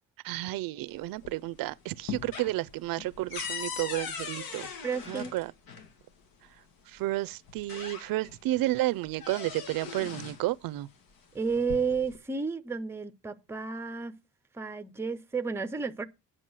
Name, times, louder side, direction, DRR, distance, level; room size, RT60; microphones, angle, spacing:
voice 1, 0.2-4.7 5.1-5.5 6.9-10.9, right 17 dB, 85° right, 0.5 m, -31 dB
sound 1, 0.9-1.6 1.9-5.9 7.0-7.1 7.5-8.4 8.8-10.5 11.4-12.2, left 6 dB, 85° left, 1.8 m, -40 dB
voice 2, 4.8-5.3 11.3-14.1 14.5-16.0, right 5 dB, 5° right, 0.5 m, -32 dB
9.1 x 6.2 x 6.1 m
cardioid pair, 175°, 34 cm